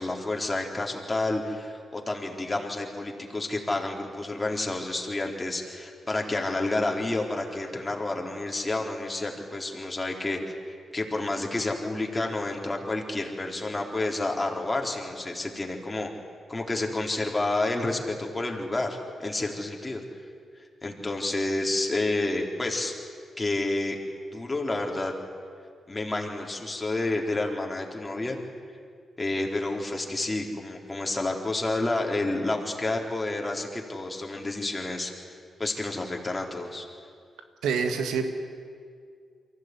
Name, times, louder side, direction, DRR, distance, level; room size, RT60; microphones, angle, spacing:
voice 1, 0.0-10.5 10.9-16.1 16.5-20.0 20.8-22.9 23.4-24.0 24.3-25.1 25.9-28.4 29.2-35.1 35.6-36.9, left 2 dB, 25° left, 1 dB, 4.1 m, -29 dB
voice 2, 37.6-38.3, right 6 dB, 85° right, 6 dB, 1.9 m, -26 dB
23.5 x 15.5 x 9.7 m, 2.1 s
supercardioid pair, 50°, 0 cm